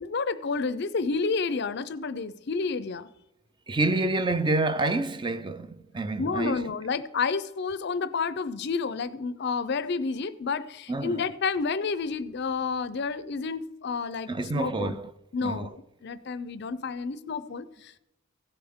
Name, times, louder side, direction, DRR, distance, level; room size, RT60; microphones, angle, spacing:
voice 1, 0.0-3.1 6.2-15.0 15.3-15.7 16.0-18.0, left 4 dB, 55° left, 0.5 m, -30 dB
voice 2, 3.7-6.5 10.9-11.2 14.3-15.1 15.4-15.7, right 2 dB, 20° right, 0.5 m, -28 dB
16.0 x 7.8 x 3.6 m
head